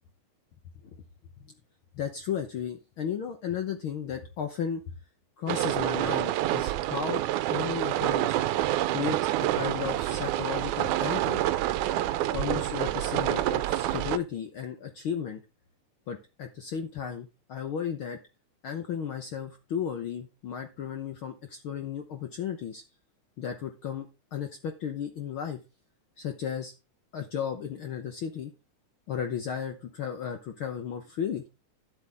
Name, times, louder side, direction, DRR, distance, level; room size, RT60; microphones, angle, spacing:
voice 1, 1.9-4.8 5.4-7.2 7.5-8.4 8.9-9.2 9.5-11.4 12.3-15.4 16.1-18.2 18.6-22.8 23.4-25.6 26.2-26.7 27.1-28.5 29.1-31.4, left 8 dB, 65° left, 6 dB, 1.3 m, -34 dB
sound 1, 5.5-14.2, right 14 dB, 90° right, 2.1 m, -27 dB
11.0 x 8.0 x 3.4 m, 0.27 s
omnidirectional pair, 3.4 m